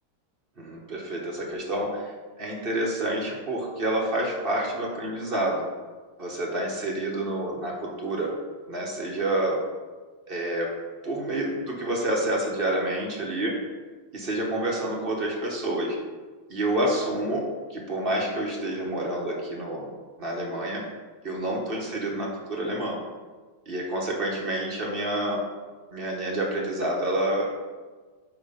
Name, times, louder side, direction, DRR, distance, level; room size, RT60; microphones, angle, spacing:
voice 1, 0.6-2.1 2.4-5.6 6.2-8.3 8.7-9.6 10.3-10.7 11.0-13.5 14.1-16.0 16.5-17.4 17.7-19.9 20.2-20.8 21.2-23.0 23.7-25.4 25.9-27.4, right 1 dB, 35° right, -2 dB, 1.0 m, -28 dB
8.7 x 3.5 x 5.5 m, 1.4 s
omnidirectional pair, 2.4 m